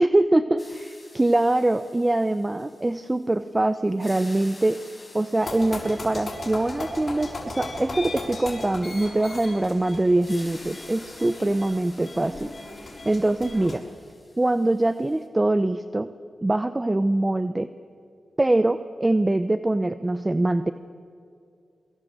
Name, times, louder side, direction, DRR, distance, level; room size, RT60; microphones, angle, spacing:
voice 1, 0.0-4.8 5.1-12.5 12.8-13.8 14.4-16.1 16.4-17.7 18.4-20.7, right 2 dB, 25° right, 12 dB, 0.9 m, -23 dB
sound 1, 0.6-3.5 3.8-8.7 10.2-15.3, left 2 dB, 35° left, 4.7 m, -50 dB
sound 2, 5.4-13.8, left 2 dB, 50° left, 6.3 m, -37 dB
23.5 x 22.5 x 8.2 m, 2.4 s
cardioid pair, 50°, 0 cm